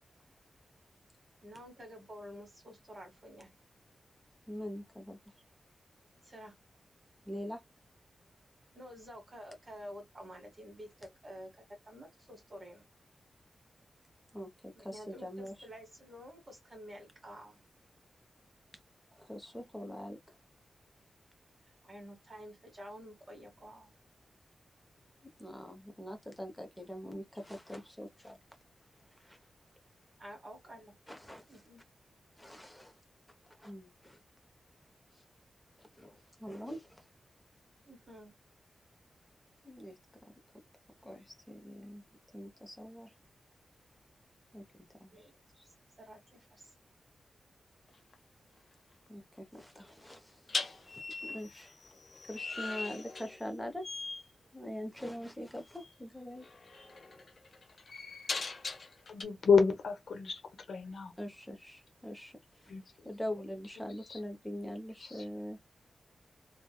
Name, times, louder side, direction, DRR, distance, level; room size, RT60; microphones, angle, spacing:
voice 1, 1.4-3.5 6.2-6.5 8.7-12.8 14.7-17.6 21.8-23.9 30.2-30.9 31.5-31.8 37.9-38.3 45.1-45.3 46.0-46.7, equal, 30° right, 1.4 m, -50 dB
voice 2, 4.5-5.2 7.3-7.6 14.3-15.5 19.2-20.2 25.2-28.4 29.2-29.4 31.1-31.5 32.4-32.9 33.6-34.2 36.0-37.0 39.6-40.3 41.0-42.0 42.3-43.1 44.5-44.7 45.0-45.2 45.6-45.7 49.1-51.8 52.3-53.9 54.5-56.5 61.2-62.3 62.6-62.7 63.0-65.7, equal, 5° left, 0.8 m, -43 dB
sound 1, 47.9-48.1 50.5-53.6 53.8-54.3 55.7-55.9 56.4-59.2, left 3 dB, 45° left, 0.7 m, -40 dB
voice 3, 59.1-60.4 60.7-61.1 62.7-62.8 64.1-64.2 65.0-65.2, left 5 dB, 75° left, 0.9 m, -29 dB
3.1 x 2.2 x 2.2 m
wide cardioid pair, 165°, 0 cm